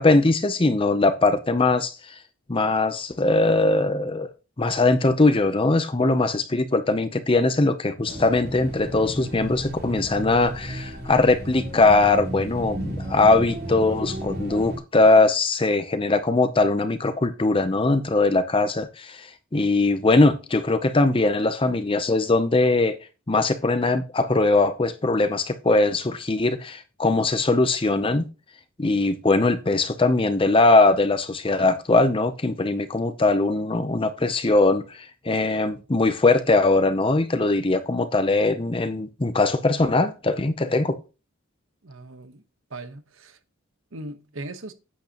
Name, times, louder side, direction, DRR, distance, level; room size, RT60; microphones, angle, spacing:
voice 1, 0.0-2.2 2.5-4.3 4.6-23.0 23.3-28.3 28.8-41.0, left 2 dB, 25° left, 0.6 m, -21 dB
sound 1, 8.1-14.8, right 1 dB, 50° right, 3.2 m, -33 dB
voice 2, 41.8-42.4 42.7-43.4 43.9-44.7, right 2 dB, 75° right, 1.2 m, -38 dB
10.5 x 8.5 x 3.0 m
head